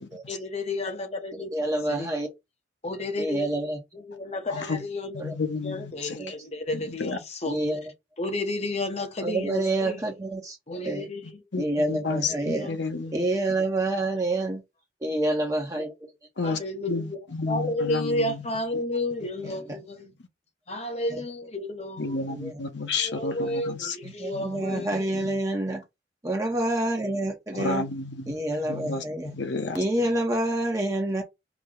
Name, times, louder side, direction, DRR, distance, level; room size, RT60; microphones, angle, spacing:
voice 1, 0.3-1.5 1.9-2.1 2.8-3.5 3.9-5.2 5.6-7.6 8.2-10.0 10.7-11.4 12.4-12.8 16.4-17.2 17.5-20.2 20.7-22.3 23.0-25.4, left 2 dB, 35° left, 0.9 m, -32 dB
voice 2, 1.5-2.3 3.2-3.8 5.2-5.3 6.2-6.3 7.5-7.8 9.2-11.1 11.6-12.7 13.1-14.6 15.0-16.1 19.4-19.8 22.3-22.6 24.0-25.8 26.2-27.9 28.3-29.3 29.7-31.2, right 1 dB, 20° right, 0.8 m, -27 dB
voice 3, 4.5-4.8 5.1-6.2 6.7-7.2 11.5-13.2 16.4-16.6 16.9-18.5 22.0-24.8 25.1-25.2 27.5-28.4 28.6-29.8, left 3 dB, 75° left, 0.9 m, -31 dB
5.0 x 2.2 x 3.8 m
head